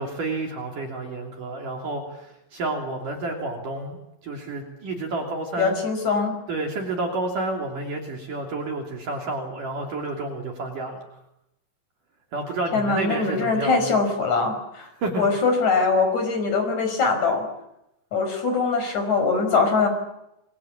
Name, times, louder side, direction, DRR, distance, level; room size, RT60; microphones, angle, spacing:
voice 1, 0.0-4.0 4.2-5.8 6.5-11.0 12.3-13.9 15.0-15.2, right 2 dB, 45° right, 2 dB, 4.2 m, -30 dB
voice 2, 5.6-6.4 12.7-14.9 15.2-17.5 18.1-19.9, left 4 dB, 35° left, 7 dB, 6.3 m, -22 dB
29.5 x 22.5 x 8.7 m, 0.86 s
omnidirectional pair, 5.6 m